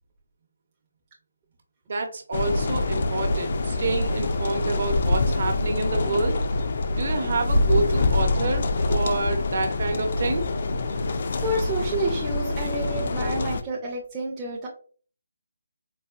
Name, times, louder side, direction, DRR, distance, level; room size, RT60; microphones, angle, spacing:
voice 1, 1.9-6.4 6.9-10.5, right 3 dB, 50° right, 4 dB, 0.7 m, -28 dB
sound 1, 2.3-13.6, left 2 dB, 45° left, 0.3 m, -25 dB
voice 2, 11.4-14.7, right 2 dB, 15° right, -4 dB, 0.5 m, -29 dB
4.0 x 2.2 x 2.4 m, 0.41 s
hypercardioid pair, 170°, 0 cm